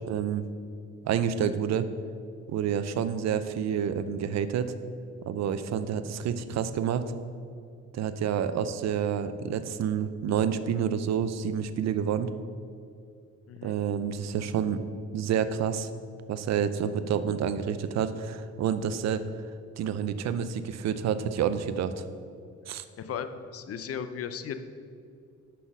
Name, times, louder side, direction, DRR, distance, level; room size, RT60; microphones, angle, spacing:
voice 1, 0.1-0.4 1.0-1.9 2.5-4.7 5.3-7.1 7.9-12.3 13.6-14.8 15.1-15.9 16.3-19.2 19.8-22.0 22.7-22.8, right 8 dB, 60° right, 12 dB, 0.6 m, -28 dB
voice 2, 23.0-24.6, left 7 dB, 50° left, 10 dB, 0.6 m, -36 dB
6.1 x 5.7 x 6.0 m, 2.4 s
cardioid pair, 90°, 30 cm